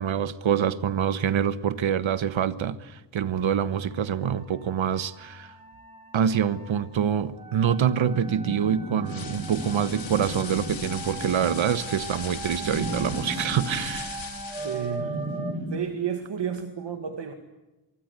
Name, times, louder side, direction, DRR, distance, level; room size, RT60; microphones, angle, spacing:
voice 1, 0.0-5.5 6.1-14.3, right 8 dB, 85° right, 1.3 m, -26 dB
sound 1, 3.5-15.5, right 3 dB, 15° right, 2.2 m, -40 dB
sound 2, 8.1-11.7 12.6-13.8 15.0-15.7, right 1 dB, 50° right, 8.0 m, -35 dB
sound 3, 9.1-15.0, left 7 dB, 80° left, 3.3 m, -39 dB
voice 2, 14.6-15.2 15.7-17.3, right 7 dB, 65° right, 2.2 m, -31 dB
24.5 x 24.0 x 8.3 m
wide cardioid pair, 160°, 46 cm